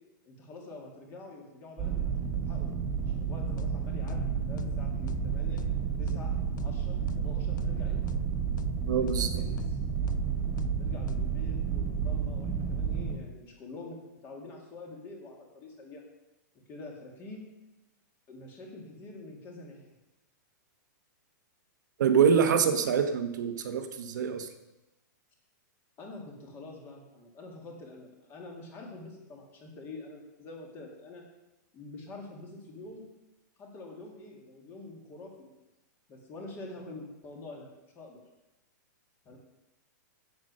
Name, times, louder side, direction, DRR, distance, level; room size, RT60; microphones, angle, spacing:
voice 1, 0.2-2.1 2.5-2.7 3.1-5.6 6.0-6.3 6.6-8.0 8.9-9.6 10.7-16.0 16.7-17.4 18.3-19.9 22.3-22.5 26.0-31.2 31.7-33.1 33.6-35.5 36.1-38.2 39.3-39.4, left 2 dB, 20° left, 0 dB, 2.2 m, -46 dB
sound 1, 1.8-13.2, right 7 dB, 20° right, 1.9 m, -31 dB
sound 2, 3.6-3.7 4.1-4.2 4.6-4.7 5.1-5.2 5.6-5.7 6.1-6.2 6.6-6.7 7.1-7.2 7.6-7.7 8.1-8.2 8.6-8.7 9.1-9.2 9.6-9.7 10.1-10.2 10.6-10.7 11.1-11.2, left 6 dB, 80° left, 0.5 m, -39 dB
voice 2, 8.9-9.3 22.0-24.5, right 7 dB, 70° right, 6 dB, 1.1 m, -25 dB
8.5 x 8.0 x 6.3 m, 1.0 s
hypercardioid pair, 165°, 10 cm